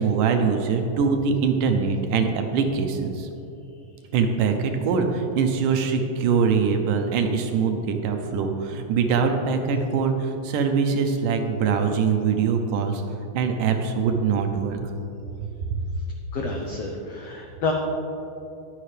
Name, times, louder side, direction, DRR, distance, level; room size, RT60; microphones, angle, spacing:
voice 1, 0.0-3.3 4.1-13.0 13.3-14.8 15.4-15.8, right 5 dB, 75° right, 5 dB, 2.1 m, -23 dB
voice 2, 16.3-17.7, left 3 dB, 90° left, 0 dB, 1.4 m, -29 dB
20.0 x 6.6 x 3.3 m, 2.8 s
omnidirectional pair, 4.1 m